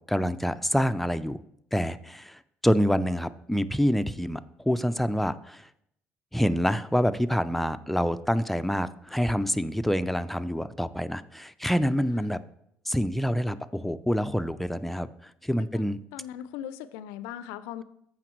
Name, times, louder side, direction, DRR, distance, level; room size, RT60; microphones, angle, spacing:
voice 1, 0.1-1.4 1.7-4.4 4.7-5.7 6.3-12.4 12.8-15.1 15.4-16.0, equal, 5° left, 12 dB, 0.5 m, -26 dB
voice 2, 15.7-17.8, left 11 dB, 80° left, 14 dB, 0.4 m, -40 dB
14.0 x 5.0 x 3.1 m, 0.73 s
hypercardioid pair, 60°, 5 cm